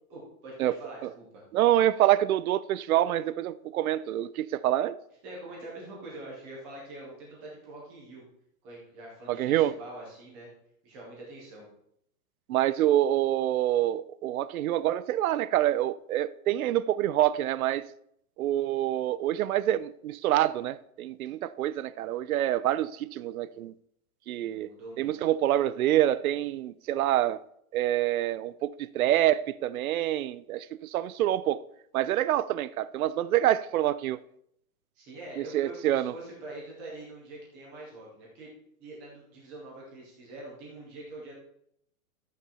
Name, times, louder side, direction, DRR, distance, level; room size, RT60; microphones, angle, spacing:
voice 1, 0.1-1.4 5.2-8.2 8.6-10.5 10.8-11.7 24.4-25.1 35.0-38.5 38.8-41.3, right 2 dB, 5° right, 0.4 m, -44 dB
voice 2, 1.5-5.0 9.3-9.7 12.5-17.9 18.4-23.7 24.3-24.7 25.0-27.4 27.7-31.6 31.9-34.2 35.4-36.1, right 13 dB, 70° right, 0.7 m, -26 dB
12.5 x 8.5 x 4.2 m
hypercardioid pair, 160°, 45 cm